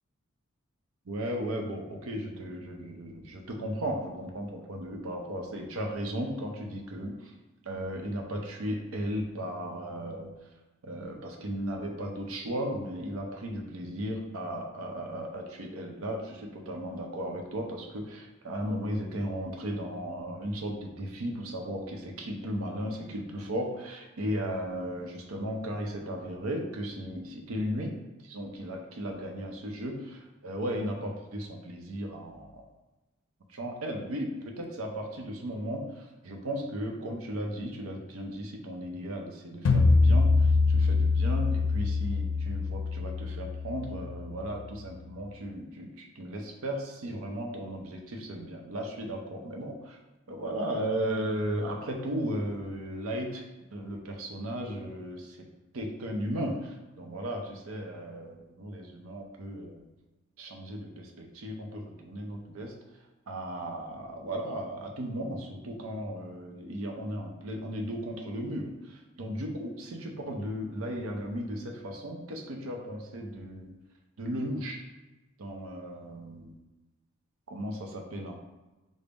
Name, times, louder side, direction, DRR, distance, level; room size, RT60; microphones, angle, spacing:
voice 1, 1.1-7.3 7.6-10.3 10.8-27.9 28.2-32.6 33.5-50.0 50.3-53.4 53.7-55.4 55.7-59.9 60.4-62.7 63.3-73.7 74.2-74.8 75.4-76.5 77.5-78.4, equal, 80° right, 2 dB, 0.6 m, -36 dB
sound 1, 39.7-44.7, left 3 dB, 80° left, 0.4 m, -25 dB
3.5 x 2.1 x 3.9 m, 1.1 s
head